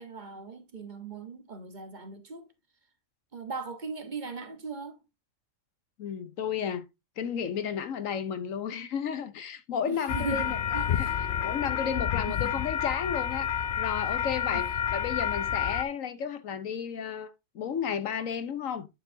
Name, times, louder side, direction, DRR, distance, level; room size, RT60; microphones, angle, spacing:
voice 1, 0.0-2.5 3.3-5.0 9.9-11.0 12.2-12.6, right 4 dB, 40° right, 1.1 m, -39 dB
voice 2, 6.0-6.8 7.2-18.9, left 7 dB, 80° left, 1.2 m, -33 dB
sound 1, 10.1-15.8, left 9 dB, 60° left, 0.5 m, -29 dB
9.6 x 5.7 x 2.7 m
omnidirectional pair, 1.4 m